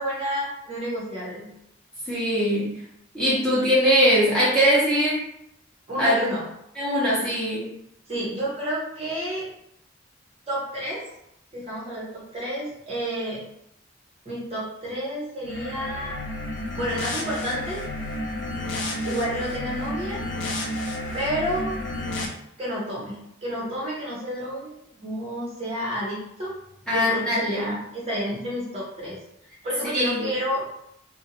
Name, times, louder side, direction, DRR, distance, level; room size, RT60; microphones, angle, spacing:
voice 1, 0.0-1.5 5.9-6.4 8.1-9.4 10.5-11.0 11.5-13.4 14.2-16.2 16.7-17.8 19.0-20.2 21.1-21.7 22.6-26.5 26.9-29.1 29.6-30.6, equal, 30° right, -6 dB, 0.7 m, -30 dB
voice 2, 2.1-2.8 3.1-5.2 6.0-6.2 6.8-7.7 26.9-27.7 29.9-30.3, equal, 5° left, -9 dB, 0.8 m, -21 dB
sound 1, 15.4-22.3, left 1 dB, 60° left, 0.4 m, -31 dB
2.5 x 2.1 x 2.9 m, 0.77 s
head